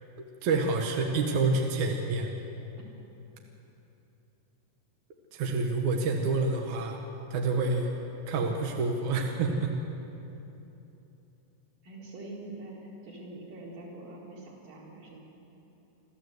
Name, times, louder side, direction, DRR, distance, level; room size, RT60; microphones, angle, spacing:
voice 1, 0.4-2.3 5.3-7.0 7.3-7.9 8.3-9.8, right 3 dB, 65° right, 2 dB, 2.0 m, -28 dB
voice 2, 11.8-15.2, right 2 dB, 45° right, -4 dB, 5.3 m, -44 dB
28.5 x 13.0 x 8.0 m, 3.0 s
omnidirectional pair, 5.2 m